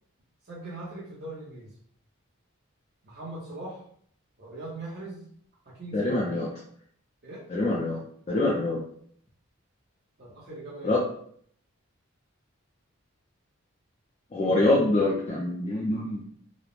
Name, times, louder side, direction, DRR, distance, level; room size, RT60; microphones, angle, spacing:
voice 1, 0.4-1.7 3.0-3.8 4.4-5.3 5.7-6.3 7.2-7.4 10.2-10.9, right 2 dB, 45° right, -6 dB, 0.7 m, -40 dB
voice 2, 5.9-6.5 7.5-8.0 8.3-8.8 10.8-11.0 14.3-16.2, left 2 dB, 30° left, -4 dB, 0.4 m, -25 dB
3.1 x 2.0 x 2.4 m, 0.62 s
head